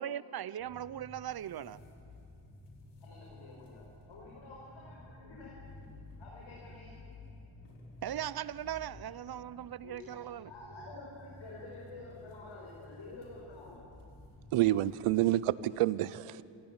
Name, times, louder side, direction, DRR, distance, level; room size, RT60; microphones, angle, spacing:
voice 1, 0.0-1.8 8.0-10.5, right 10 dB, 45° right, 19 dB, 0.7 m, -39 dB
sound 1, 0.6-15.2, left 2 dB, 80° left, 4.7 m, -53 dB
voice 2, 3.0-5.5 6.2-6.9 9.2-10.2 10.5-13.8, left 2 dB, 60° left, -4 dB, 6.0 m, -50 dB
voice 3, 14.5-16.4, right 15 dB, 85° right, 19 dB, 0.8 m, -28 dB
26.0 x 17.0 x 8.9 m, 2.6 s
cardioid pair, 75°, 50 cm